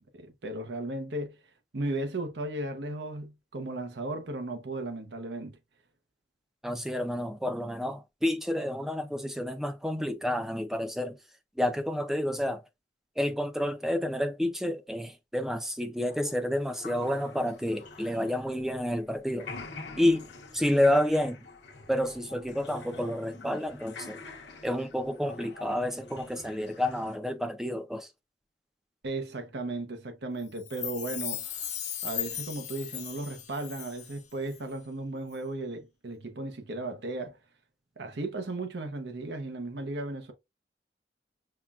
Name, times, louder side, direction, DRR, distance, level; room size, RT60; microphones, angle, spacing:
voice 1, 0.1-1.4 1.7-5.6 29.0-31.7 32.0-37.4 38.0-40.3, right 2 dB, 70° right, 0.7 m, -35 dB
voice 2, 6.6-11.2 11.6-12.6 13.2-19.5 20.0-20.3 20.5-21.4 21.9-24.2 24.6-28.1, left 1 dB, 5° right, 0.5 m, -29 dB
sound 1, 16.1-19.0 19.3-27.2, left 3 dB, 75° left, 0.9 m, -47 dB
Chime, 30.6-34.2 34.5-34.6, left 10 dB, 40° left, 0.7 m, -37 dB
5.7 x 2.2 x 2.3 m
head